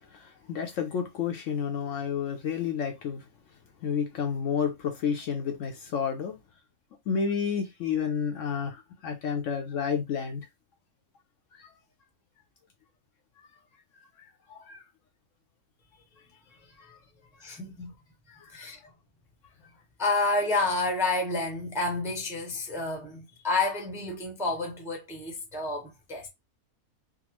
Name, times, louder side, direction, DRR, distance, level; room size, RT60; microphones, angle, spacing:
voice 1, 0.1-3.2 3.8-6.4 7.1-10.5 11.5-11.7 14.2-14.8 16.8-17.0 18.3-18.7, left 7 dB, 65° left, 0.9 m, -31 dB
voice 2, 17.4-17.9 18.5-18.8 20.0-26.3, left 2 dB, 5° right, 0.6 m, -29 dB
3.6 x 2.0 x 2.9 m
omnidirectional pair, 1.6 m